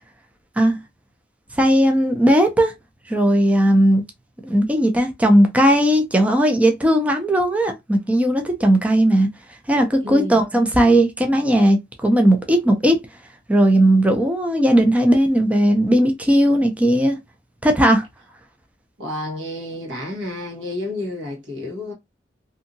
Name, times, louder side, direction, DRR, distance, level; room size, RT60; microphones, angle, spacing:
voice 1, 1.5-2.7 3.1-4.0 4.4-9.3 9.7-13.0 13.5-17.2 17.6-18.1, right 1 dB, 10° right, 0.4 m, -17 dB
voice 2, 10.0-10.5 19.0-21.9, left 1 dB, 85° right, 1.4 m, -30 dB
2.7 x 2.6 x 2.6 m
head